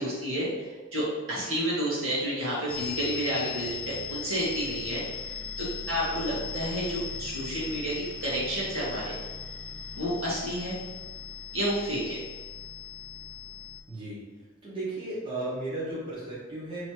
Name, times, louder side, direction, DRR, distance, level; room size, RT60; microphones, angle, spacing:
voice 1, 0.0-7.9 8.2-9.1 9.9-10.8 11.5-12.2, equal, 70° right, -7 dB, 1.4 m, -30 dB
sound 1, 2.7-13.8, left 6 dB, 5° left, 0.4 m, -38 dB
voice 2, 13.9-14.2 14.6-16.9, right 2 dB, 25° right, -10 dB, 1.4 m, -35 dB
3.2 x 3.0 x 4.5 m, 1.2 s
head